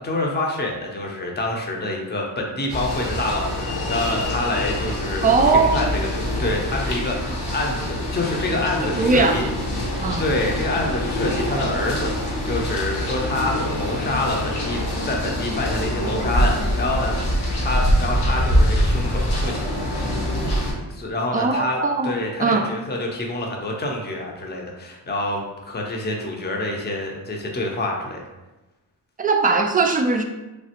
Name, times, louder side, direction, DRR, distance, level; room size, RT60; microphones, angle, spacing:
voice 1, 0.0-9.5 10.2-17.1 17.4-19.7 20.9-28.2, left 2 dB, 25° left, 0 dB, 0.7 m, -27 dB
sound 1, 2.7-20.7, equal, 60° left, 1.0 m, -24 dB
voice 2, 5.2-5.9 8.9-9.4 10.0-10.2 21.3-22.1 22.4-22.7 29.2-30.2, right 4 dB, 20° right, 5 dB, 0.4 m, -19 dB
3.2 x 2.3 x 2.8 m, 1.1 s
cardioid pair, 50°, 44 cm